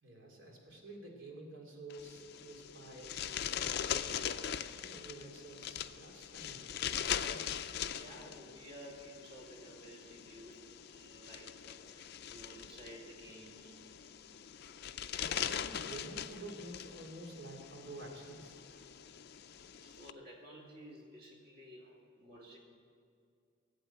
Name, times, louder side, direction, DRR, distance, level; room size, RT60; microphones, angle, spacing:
voice 1, 0.0-3.2 3.6-4.3 4.8-6.6 7.3-7.4 15.2-18.9 21.8-21.9, right 1 dB, 70° right, 0 dB, 3.0 m, -50 dB
sound 1, 1.9-20.1, left 9 dB, 50° left, 0.4 m, -41 dB
voice 2, 7.9-13.7 19.8-21.9 22.2-22.6, equal, 45° right, -2 dB, 2.8 m, -53 dB
15.5 x 8.2 x 9.1 m, 2.3 s
head